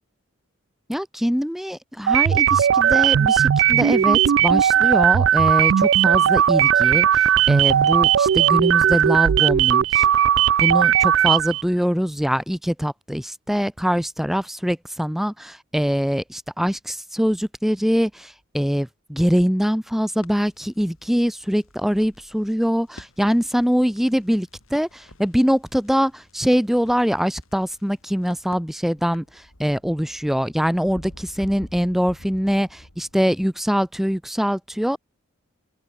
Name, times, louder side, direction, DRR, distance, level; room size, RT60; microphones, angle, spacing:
voice 1, 0.9-10.1 10.6-35.0, equal, ahead, 0.5 m, -23 dB
sound 1, 2.1-11.6, right 10 dB, 60° right, 0.3 m, -17 dB
Crackle, 20.2-29.4, left 2 dB, 70° left, 6.9 m, -52 dB
sound 2, 21.9-22.7 24.0-24.1 24.6-25.3 26.7-27.0 27.3-27.4 27.7-33.4, left 1 dB, 90° left, 4.8 m, -46 dB
open air
head